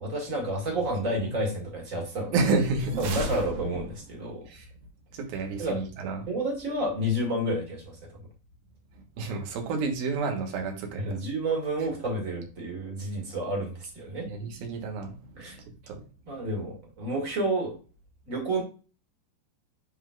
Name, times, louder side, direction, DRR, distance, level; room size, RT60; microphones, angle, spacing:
voice 1, 0.0-2.5 3.0-4.5 5.6-8.0 11.0-14.3 15.4-15.6 16.3-17.7 18.3-18.6, right 1 dB, 30° right, -1 dB, 1.6 m, -30 dB
voice 2, 2.3-3.0 4.5-4.7 5.1-6.3 8.9-11.1 11.8-11.9 14.2-16.0, right 4 dB, 90° right, 3 dB, 3.1 m, -30 dB
sound 1, 2.5-4.2, right 2 dB, 65° right, 2.4 m, -34 dB
11.0 x 3.8 x 2.4 m, 0.36 s
omnidirectional pair, 4.1 m